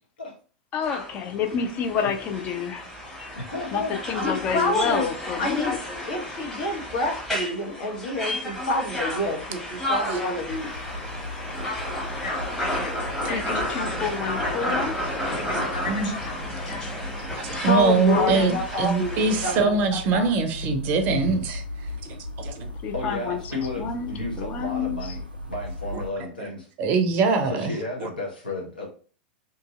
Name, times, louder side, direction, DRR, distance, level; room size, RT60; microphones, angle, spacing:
voice 1, 0.7-2.8 3.2-3.3 3.7-3.8 4.1-5.8 13.3-14.9 18.0-18.6 22.8-23.4 23.8-24.1 24.4-25.0, left 7 dB, 30° left, 6 dB, 0.4 m, -28 dB
sound 1, 0.8-19.6, equal, 10° left, 1.0 m, -32 dB
voice 2, 3.4-3.9 21.1-21.4 22.9-26.7 27.5-28.9, left 2 dB, 80° left, -2 dB, 0.8 m, -33 dB
voice 3, 4.2-5.1 5.4-5.8 6.1-10.8 11.6-11.9 12.2-14.9 15.3-16.9 17.7-20.3, left 1 dB, 60° left, -1 dB, 1.0 m, -29 dB
sound 2, 10.5-26.1, left 1 dB, 90° right, 0.4 m, -37 dB
voice 4, 17.4-21.6 22.0-22.7 25.9-26.0 26.4-26.5 26.8-27.7 28.0-28.1, right 4 dB, 35° right, 7 dB, 0.5 m, -23 dB
2.7 x 2.6 x 2.4 m, 0.41 s
figure-of-eight pair, 90°, 5 cm